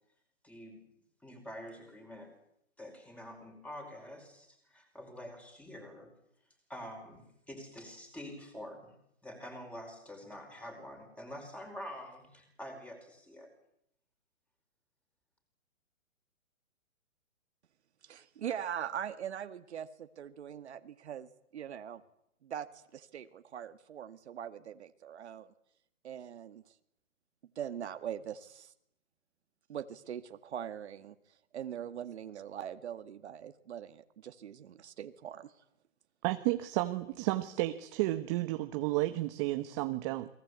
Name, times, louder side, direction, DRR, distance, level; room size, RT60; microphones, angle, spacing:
voice 1, 0.4-0.9 1.2-2.3 2.8-6.1 6.7-9.0 9.2-13.5, equal, 5° left, 5 dB, 5.1 m, -47 dB
voice 2, 18.0-22.0 22.4-25.5 26.0-26.7 27.6-28.7 29.7-31.2 31.5-35.5, right 9 dB, 55° right, 9 dB, 2.0 m, -42 dB
voice 3, 36.2-40.3, right 17 dB, 20° right, 9 dB, 1.1 m, -32 dB
30.0 x 22.5 x 8.4 m, 0.76 s
hypercardioid pair, 150°, 40 cm